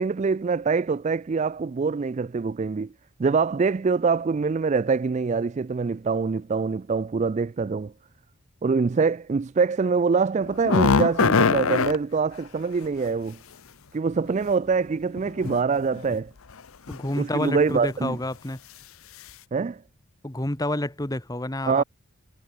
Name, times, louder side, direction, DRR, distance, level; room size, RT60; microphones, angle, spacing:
voice 1, 0.0-2.9 3.2-7.9 8.6-13.4 13.9-16.3 17.2-18.2 19.5-19.8 21.7-21.8, right 5 dB, 30° right, 0.3 m, -24 dB
sound 1, 10.5-12.0 14.1-14.2 15.2-15.6 15.9-16.2 16.9-17.2 17.6-17.7 18.1-18.2, left 4 dB, 70° left, 0.7 m, -22 dB
voice 2, 16.9-18.6 20.2-21.8, left 1 dB, 15° left, 1.2 m, -29 dB
head